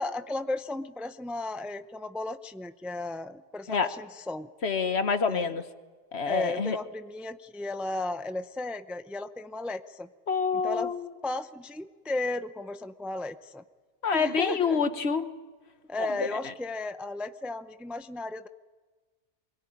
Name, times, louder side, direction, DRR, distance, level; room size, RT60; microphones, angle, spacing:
voice 1, 0.0-4.5 5.3-5.6 6.3-10.1 10.5-10.9 11.2-13.6 14.1-14.8 15.9-18.5, left 2 dB, ahead, 10 dB, 0.5 m, -35 dB
voice 2, 4.6-5.6 6.1-6.8 10.3-11.1 14.0-15.3, left 5 dB, 65° left, 10 dB, 1.5 m, -27 dB
24.0 x 21.5 x 9.8 m, 1.4 s
omnidirectional pair, 1.2 m